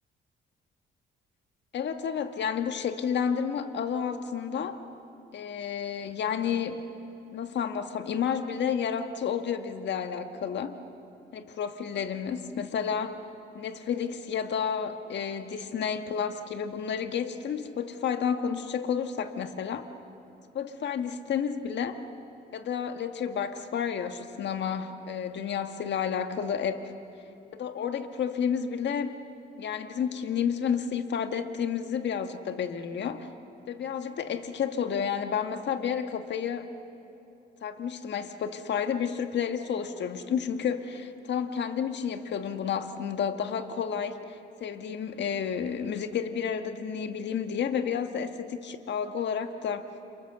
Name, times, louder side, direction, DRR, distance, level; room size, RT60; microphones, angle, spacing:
voice 1, 1.7-4.8 5.3-6.8 7.3-10.8 11.3-13.1 13.5-19.9 20.5-22.0 22.5-26.8 27.5-29.2 29.6-33.3 33.7-36.7 37.6-49.9, left 7 dB, 65° left, 7 dB, 1.6 m, -31 dB
29.5 x 27.0 x 6.9 m, 2.9 s
cardioid pair, 90°, 20 cm